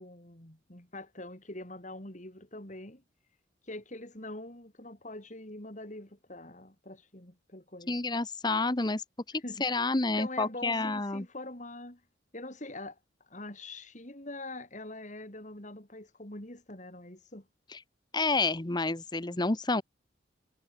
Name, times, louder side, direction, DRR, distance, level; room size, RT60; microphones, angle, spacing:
voice 1, 0.0-3.0 3.7-8.0 9.4-9.6 10.2-12.0 12.3-13.0 13.3-17.5, left 2 dB, 40° left, 3.8 m, -44 dB
voice 2, 7.9-9.0 9.3-11.2 17.7-17.8 18.1-19.8, left 3 dB, 20° left, 0.9 m, -29 dB
head